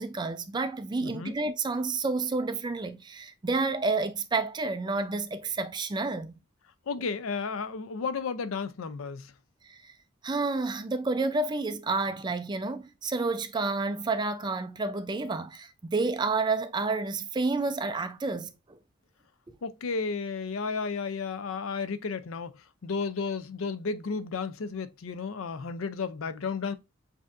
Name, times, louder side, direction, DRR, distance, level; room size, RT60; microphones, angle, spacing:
voice 1, 0.0-6.4 9.6-9.9 10.2-18.8 19.5-19.6, right 3 dB, 20° right, 0.4 m, -30 dB
voice 2, 1.0-1.3 6.9-9.3 19.6-26.7, left 5 dB, 85° left, 0.5 m, -33 dB
7.3 x 2.6 x 2.5 m
head